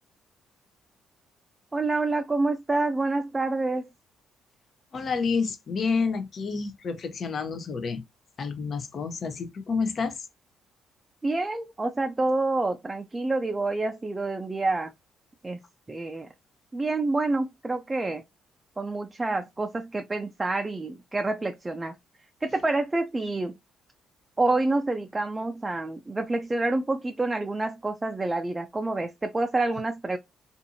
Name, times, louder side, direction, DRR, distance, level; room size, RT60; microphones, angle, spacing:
voice 1, 1.7-3.9 11.2-14.9 15.4-15.6 15.9-16.3 16.7-18.2 18.8-22.0 22.4-23.6 24.4-30.2, right 2 dB, 20° right, 0.4 m, -27 dB
voice 2, 4.9-8.0 8.4-10.3, left 5 dB, 50° left, 0.6 m, -29 dB
2.6 x 2.5 x 2.6 m
supercardioid pair, 70°, 0 cm